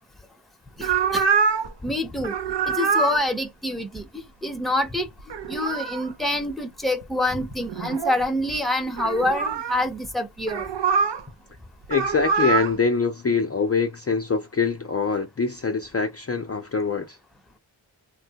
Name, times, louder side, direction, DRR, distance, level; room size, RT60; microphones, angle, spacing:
voice 1, 0.8-1.2 1.8-2.4 2.7-5.1 5.5-10.6, left 1 dB, ahead, 0.8 m, -26 dB
sound 1, 0.8-1.7 2.2-3.2 5.2-6.1 7.0-7.1 7.5-8.2 9.0-9.8 10.5-11.2 11.8-12.7, right 5 dB, 60° right, 0.7 m, -24 dB
voice 2, 11.9-17.2, left 4 dB, 30° left, 0.6 m, -24 dB
3.2 x 2.2 x 2.8 m
cardioid pair, 45°, 47 cm